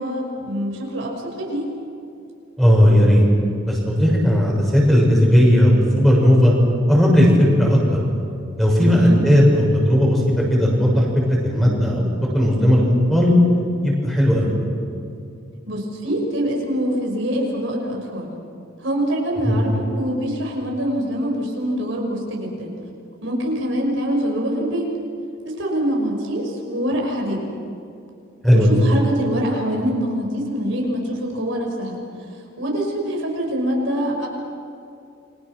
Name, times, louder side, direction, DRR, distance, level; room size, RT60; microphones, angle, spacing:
voice 1, 0.0-1.6 8.8-9.2 15.7-18.3 18.8-22.7 23.2-24.9 25.4-27.4 28.5-32.0 32.6-34.3, equal, 70° right, 0 dB, 6.0 m, -24 dB
voice 2, 2.6-3.2 3.7-6.5 6.9-7.8 8.6-13.3 13.8-14.5 19.4-19.6 28.4-28.7, equal, ahead, -2 dB, 6.3 m, -16 dB
30.0 x 24.5 x 6.3 m, 2.6 s
head